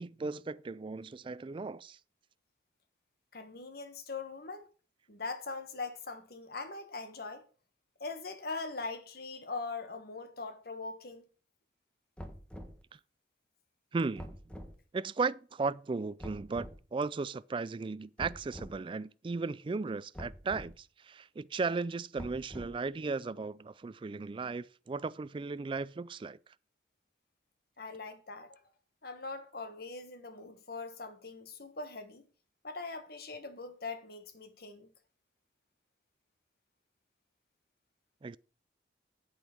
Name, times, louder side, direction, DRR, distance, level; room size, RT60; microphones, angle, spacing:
voice 1, 0.0-2.0 12.9-13.0 13.9-14.4 14.9-26.4 38.2-38.4, right 4 dB, 30° right, 0.3 m, -36 dB
voice 2, 3.3-4.7 5.1-7.4 8.0-11.2 27.8-28.6 29.0-32.2 32.6-34.9, left 3 dB, 60° left, 1.5 m, -41 dB
sound 1, 12.2-12.8 14.2-14.7 16.2-16.8 18.2-18.8 20.1-20.7 22.2-22.9, equal, 5° left, 1.2 m, -45 dB
8.7 x 8.2 x 4.5 m
head